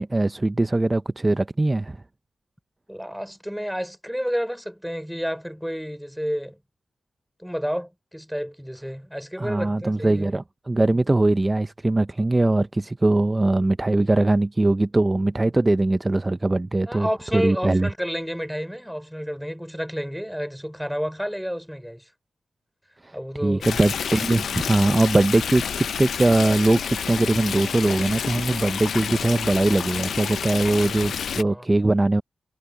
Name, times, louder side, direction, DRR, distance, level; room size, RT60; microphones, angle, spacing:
voice 1, 0.0-2.0 9.4-17.1 17.3-17.9 23.0-23.2 23.4-32.2, right 2 dB, 25° right, 0.7 m, -21 dB
voice 2, 2.9-6.6 7.4-10.3 16.9-22.1 23.1-23.7 31.4-31.7, equal, ahead, 4.0 m, -30 dB
Stream, 23.6-31.4, left 7 dB, 80° left, 0.6 m, -29 dB
cardioid pair, 55°, 0 cm